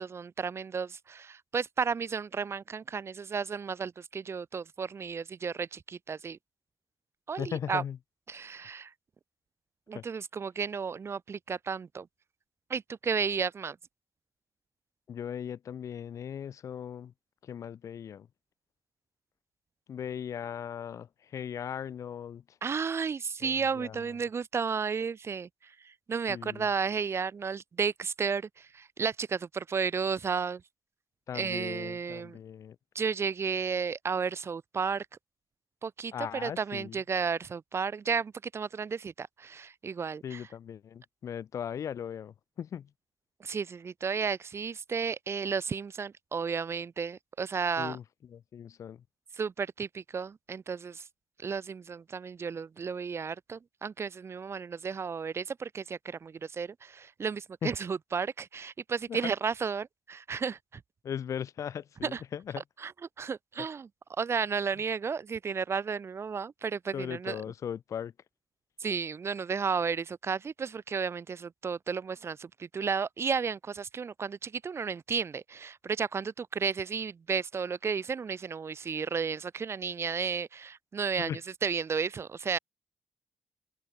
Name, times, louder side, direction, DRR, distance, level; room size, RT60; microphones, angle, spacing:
voice 1, 0.0-6.4 7.3-7.8 8.3-8.9 9.9-12.1 12.7-13.8 22.6-25.5 26.1-30.6 31.3-32.4 33.0-35.1 35.8-40.4 43.4-48.0 49.4-51.0 51.4-60.6 62.0-62.2 62.8-62.9 63.2-63.9 64.2-67.4 68.8-81.3 81.6-82.6, right 5 dB, 50° right, 2.2 m, -33 dB
voice 2, 7.4-8.0 9.9-10.0 15.1-17.1 17.4-18.3 19.9-22.6 23.4-24.2 26.3-26.7 31.3-32.8 36.1-37.0 40.2-42.9 47.8-49.0 57.6-57.7 59.1-59.3 61.0-62.6 66.9-68.1 81.2-81.4, left 8 dB, 70° left, 4.0 m, -38 dB
open air
supercardioid pair, 55°, 6 cm